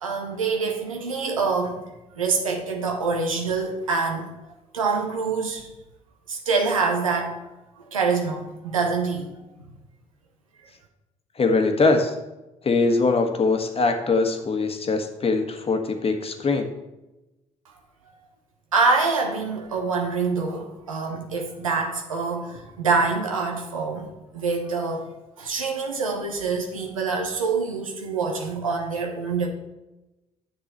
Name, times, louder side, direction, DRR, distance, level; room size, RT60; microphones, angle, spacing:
voice 1, 0.0-1.8 2.2-4.3 4.7-5.7 6.3-7.4 7.9-9.3 18.7-24.1 24.3-25.1 25.4-29.5, right 4 dB, 85° right, 2 dB, 1.0 m, -25 dB
voice 2, 11.4-12.1 12.6-16.7, left 3 dB, 35° left, 5 dB, 1.4 m, -22 dB
9.9 x 7.0 x 4.2 m, 1.0 s
figure-of-eight pair, 45°, 17 cm